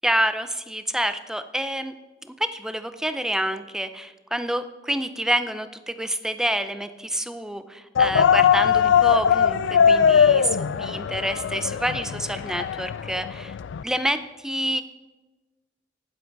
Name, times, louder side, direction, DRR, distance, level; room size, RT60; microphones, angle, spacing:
voice 1, 0.0-1.9 2.3-13.5 13.8-14.8, right 1 dB, 5° right, 10 dB, 0.5 m, -28 dB
sound 1, 8.0-13.8, left 7 dB, 75° left, 0.3 m, -20 dB
19.0 x 7.7 x 4.7 m, 1.2 s
head